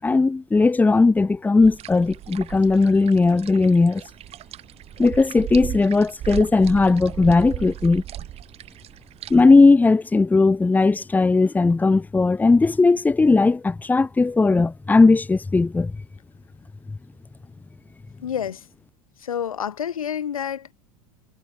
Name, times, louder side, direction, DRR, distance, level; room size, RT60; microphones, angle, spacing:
voice 1, 0.0-4.0 5.0-8.0 9.3-15.9, left 3 dB, 10° left, 0.6 m, -17 dB
sound 1, 1.6-9.4, right 13 dB, 35° right, 0.6 m, -36 dB
voice 2, 18.2-18.7 19.2-20.7, left 8 dB, 85° left, 1.0 m, -28 dB
hypercardioid pair, 80°, 18 cm